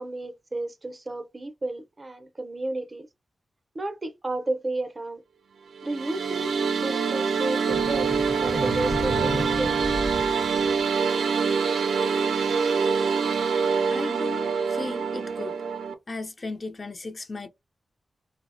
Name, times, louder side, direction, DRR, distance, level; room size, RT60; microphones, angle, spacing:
voice 1, 0.0-3.1 3.7-5.2 5.8-9.8, right 2 dB, 30° right, 0.5 m, -32 dB
sound 1, 5.8-15.9, right 5 dB, 90° right, 0.4 m, -25 dB
sound 2, 7.7-11.2, left 1 dB, 75° left, 0.8 m, -33 dB
voice 2, 13.9-15.5 16.1-17.5, left 3 dB, 45° left, 0.5 m, -36 dB
2.7 x 2.0 x 2.5 m
cardioid pair, 70°, 0 cm